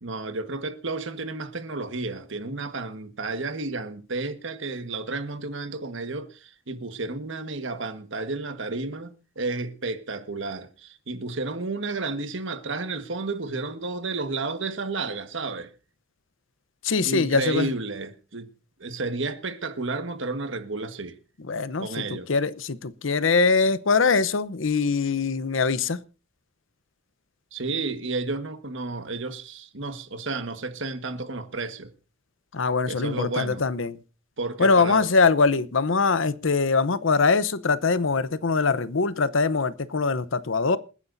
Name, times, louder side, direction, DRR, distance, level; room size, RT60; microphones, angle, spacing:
voice 1, 0.0-15.7 17.0-18.5 18.8-21.2 21.8-22.3 27.5-31.9 32.9-33.6 34.4-35.1, right 3 dB, 65° right, 1.5 m, -32 dB
voice 2, 16.8-17.7 21.5-26.0 32.5-34.0 34.6-40.8, left 4 dB, 65° left, 0.8 m, -23 dB
27.5 x 9.8 x 2.7 m
head